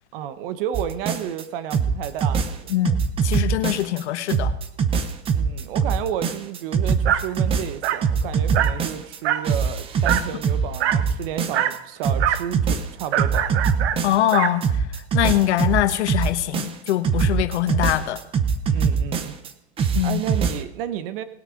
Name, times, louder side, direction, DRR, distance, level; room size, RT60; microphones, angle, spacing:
voice 1, 0.1-2.6 5.3-14.0 18.7-19.3 20.0-21.2, right 10 dB, 55° right, 12 dB, 1.1 m, -31 dB
sound 1, 0.7-1.4 1.7-4.0 4.3-9.2 9.4-11.8 12.0-14.3 14.6-19.5 19.8-20.6, right 6 dB, 15° right, 0.7 m, -23 dB
voice 2, 2.7-4.5 14.0-14.8 15.1-18.2 19.9-20.2, left 13 dB, 85° left, 11 dB, 1.2 m, -23 dB
Dog, 7.1-7.3 7.8-8.1 8.5-8.8 9.2-9.5 10.0-10.3 10.8-11.1 11.5-11.8 12.2-12.5 13.1-14.6, right 11 dB, 75° right, 0.8 m, -24 dB
19.5 x 8.5 x 3.9 m, 0.85 s
supercardioid pair, 155°, 33 cm